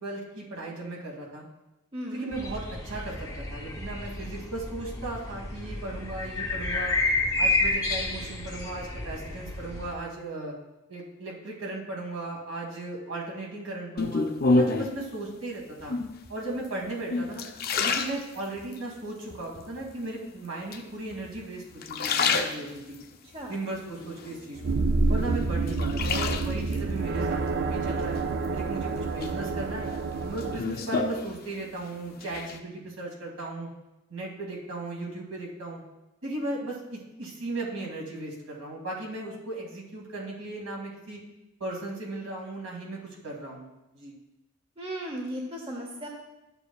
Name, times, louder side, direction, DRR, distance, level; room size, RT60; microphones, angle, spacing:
voice 1, 0.0-1.5 2.1-6.9 7.4-10.5 10.9-14.2 14.5-16.0 16.3-17.5 17.8-23.0 23.5-24.6 25.1-28.1 28.5-29.9 30.2-33.7 34.1-35.8 36.2-41.2 41.6-43.7 43.9-44.1, right 2 dB, 70° right, -2 dB, 2.3 m, -36 dB
voice 2, 1.9-2.3 23.3-23.5 44.8-46.1, right 1 dB, 25° right, 0 dB, 0.8 m, -36 dB
sound 1, 2.3-9.9, left 2 dB, 15° left, 0.8 m, -30 dB
sound 2, 14.0-15.0 15.8-16.3 16.8-18.8 19.3-19.9 20.7-21.4 21.7-23.1 23.5-24.8 25.2-26.8 28.2-28.8 29.2-31.8 32.1-32.6, left 3 dB, 40° left, 0.5 m, -29 dB
sound 3, 24.5-30.6, right 3 dB, 45° right, 0.4 m, -28 dB
12.5 x 6.8 x 2.3 m, 0.99 s
head